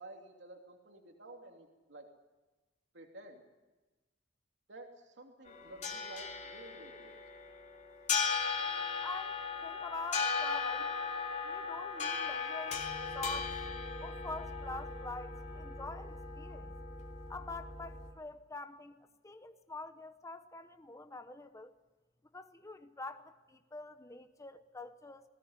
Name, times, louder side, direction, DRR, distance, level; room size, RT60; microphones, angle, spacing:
voice 1, 0.0-2.1 2.9-3.4 4.7-7.2, right 2 dB, 75° right, 2 dB, 2.8 m, -52 dB
sound 1, 5.5-18.1, left 5 dB, 40° left, 2.9 m, -37 dB
voice 2, 9.0-10.9 11.4-13.6 14.0-16.7 17.3-19.0 19.2-21.7 22.3-25.2, left 3 dB, 15° left, 8 dB, 0.9 m, -45 dB
20.5 x 18.0 x 9.7 m, 1.2 s
head